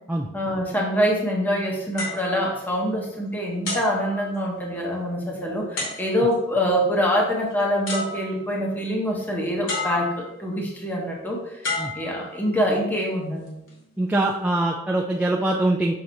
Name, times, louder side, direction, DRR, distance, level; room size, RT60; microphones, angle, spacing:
voice 1, 0.3-13.5, equal, 10° left, -2 dB, 0.9 m, -25 dB
sound 1, 2.0-3.2 3.7-4.8 5.8-6.5 7.5-7.6 7.9-8.7 9.7-10.5 11.6-12.8 13.5-13.7, left 2 dB, 75° left, 2.3 m, -32 dB
voice 2, 14.0-15.9, right 1 dB, 5° right, -2 dB, 0.4 m, -23 dB
6.4 x 5.9 x 2.7 m, 0.86 s
head